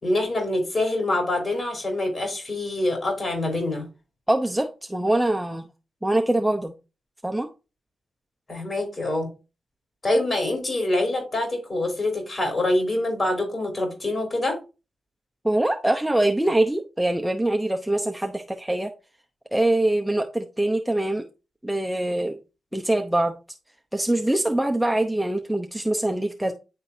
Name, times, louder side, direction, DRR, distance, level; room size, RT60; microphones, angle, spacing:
voice 1, 0.0-3.9 8.5-9.3 10.0-14.6, left 1 dB, 40° left, 3.6 m, -25 dB
voice 2, 4.3-5.7 6.0-6.7 7.2-7.5 15.4-18.9 19.5-21.2 21.6-22.4 22.7-23.3 23.9-26.5, right 1 dB, 5° right, 0.7 m, -23 dB
9.8 x 3.9 x 2.7 m
supercardioid pair, 50°, 0 cm